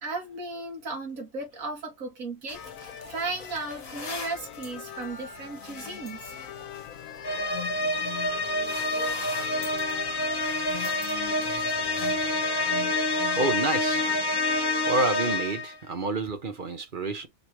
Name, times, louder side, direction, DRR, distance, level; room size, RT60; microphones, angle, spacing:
voice 1, 0.0-6.3, right 3 dB, 70° right, 2.3 m, -35 dB
sound 1, 2.5-15.4, left 9 dB, 70° left, 1.3 m, -41 dB
sound 2, 2.5-12.3, left 4 dB, 45° left, 1.5 m, -45 dB
sound 3, 7.2-15.8, left 2 dB, 20° left, 0.9 m, -27 dB
voice 2, 13.3-14.0 14.8-17.3, right 3 dB, 40° right, 0.9 m, -28 dB
5.3 x 3.1 x 2.9 m
omnidirectional pair, 1.5 m